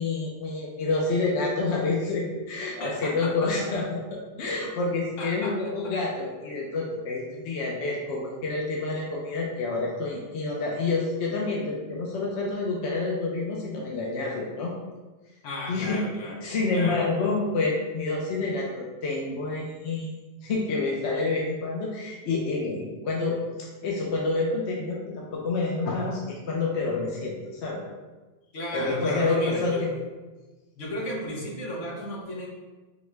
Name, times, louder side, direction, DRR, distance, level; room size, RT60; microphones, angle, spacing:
voice 1, 0.0-3.8 4.4-14.7 15.7-16.0 16.4-20.1 20.4-27.8 28.7-29.9, left 3 dB, 70° left, -2 dB, 0.9 m, -28 dB
voice 2, 2.8-3.9 5.2-5.9 15.4-17.4 28.5-29.9 30.7-32.5, equal, 85° left, -2 dB, 1.2 m, -35 dB
4.2 x 2.1 x 4.4 m, 1.2 s
omnidirectional pair, 1.2 m